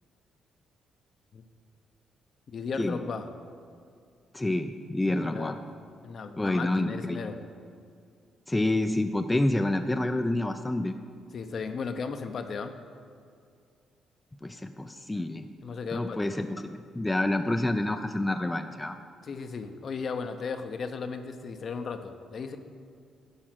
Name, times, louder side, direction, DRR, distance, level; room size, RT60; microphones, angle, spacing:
voice 1, 2.5-3.3 5.1-5.6 6.0-7.4 11.3-12.8 15.6-16.3 19.2-22.6, left 5 dB, 55° left, 8 dB, 0.7 m, -35 dB
voice 2, 4.3-5.6 6.4-7.2 8.5-11.0 14.4-15.5 15.9-19.0, left 1 dB, 15° left, 6 dB, 0.4 m, -28 dB
10.5 x 4.8 x 6.0 m, 2.3 s
cardioid pair, 90°, 0 cm